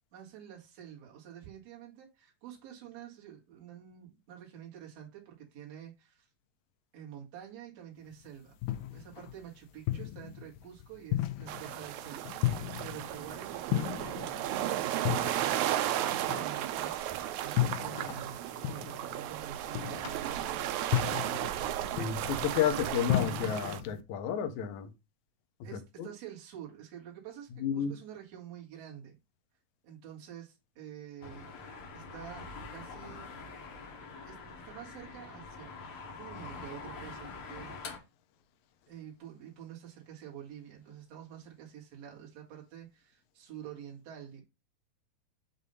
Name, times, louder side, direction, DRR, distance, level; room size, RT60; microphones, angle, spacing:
voice 1, 0.1-6.3 6.9-8.5 8.8-18.4 18.7-20.8 25.6-29.2 29.8-31.5 31.9-33.3 34.2-35.7 36.2-38.0 38.9-44.4, right 10 dB, 55° right, 2.5 m, -48 dB
sound 1, 8.1-24.0, left 14 dB, 90° left, 2.3 m, -36 dB
sound 2, 11.5-23.8, right 12 dB, 85° right, 1.6 m, -34 dB
voice 2, 22.0-24.9 25.7-26.1 27.6-27.9, left 8 dB, 75° left, 1.9 m, -31 dB
sound 3, 31.2-38.0, left 4 dB, 60° left, 1.5 m, -45 dB
6.6 x 2.7 x 5.3 m
omnidirectional pair, 3.9 m